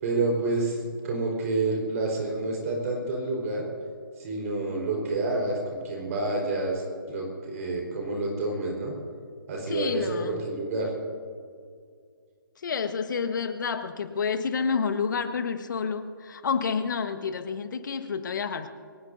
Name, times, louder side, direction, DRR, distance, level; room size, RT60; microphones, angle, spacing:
voice 1, 0.0-3.6 4.2-8.9 9.5-10.9, right 2 dB, 40° right, -1 dB, 4.4 m, -29 dB
voice 2, 9.7-10.4 12.6-18.7, left 5 dB, 60° left, 8 dB, 1.4 m, -29 dB
23.5 x 18.5 x 2.7 m, 2.2 s
figure-of-eight pair, 140°, 12 cm